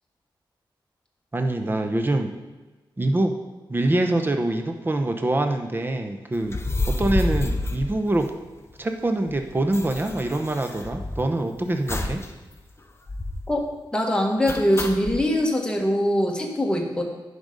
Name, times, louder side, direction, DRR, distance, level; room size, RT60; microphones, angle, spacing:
voice 1, 1.3-2.3 3.0-3.3 3.7-6.6 6.9-8.3 8.8-12.2, right 1 dB, 25° right, 5 dB, 0.8 m, -24 dB
sound 1, 6.4-8.7 9.0-9.1 9.3-11.4 11.9-12.3 12.6-12.7 13.1-13.6 14.5-15.2, left 2 dB, 30° left, 0.8 m, -29 dB
voice 2, 13.5-17.0, equal, 10° left, 0 dB, 1.6 m, -23 dB
10.5 x 5.2 x 5.2 m, 1.2 s
wide cardioid pair, 95°, 9 cm